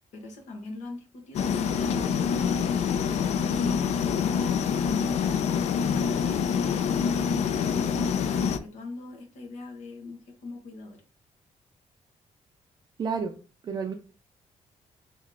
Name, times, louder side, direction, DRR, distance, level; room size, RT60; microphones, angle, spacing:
voice 1, 0.1-5.3 5.6-11.0, left 2 dB, 85° left, 2 dB, 1.4 m, -41 dB
sound 1, 1.3-8.6, left 7 dB, 70° left, 0.4 m, -26 dB
voice 2, 13.0-13.4 13.6-13.9, right 5 dB, 35° right, 3 dB, 0.4 m, -30 dB
3.6 x 3.2 x 3.7 m, 0.36 s
wide cardioid pair, 175°, 12 cm